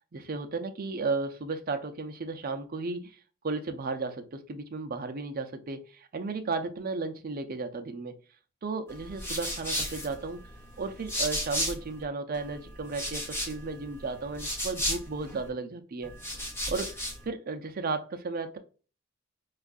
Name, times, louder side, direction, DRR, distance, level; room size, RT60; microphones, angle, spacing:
voice 1, 0.1-3.1 3.4-8.1 8.6-10.4 10.8-16.1 16.7-16.9 17.3-18.6, right 3 dB, 45° right, 7 dB, 0.5 m, -34 dB
sound 1, 8.9-12.0 12.3-15.5 16.0-17.3, equal, 10° left, 0.7 m, -35 dB
4.4 x 2.4 x 2.4 m, 0.36 s
head